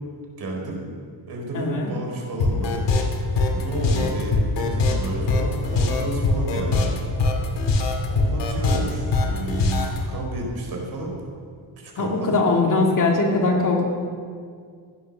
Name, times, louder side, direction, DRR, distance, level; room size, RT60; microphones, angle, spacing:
voice 1, 0.4-0.8 1.3-2.8 3.4-6.9 8.1-11.1 11.8-12.4, right 1 dB, 50° right, 0 dB, 4.2 m, -31 dB
voice 2, 1.5-1.9 12.0-13.8, left 3 dB, 40° left, -1 dB, 2.5 m, -21 dB
sound 1, 2.4-10.0, left 3 dB, 60° left, 2.6 m, -22 dB
16.0 x 11.0 x 6.3 m, 2.1 s
cardioid pair, 140°, 48 cm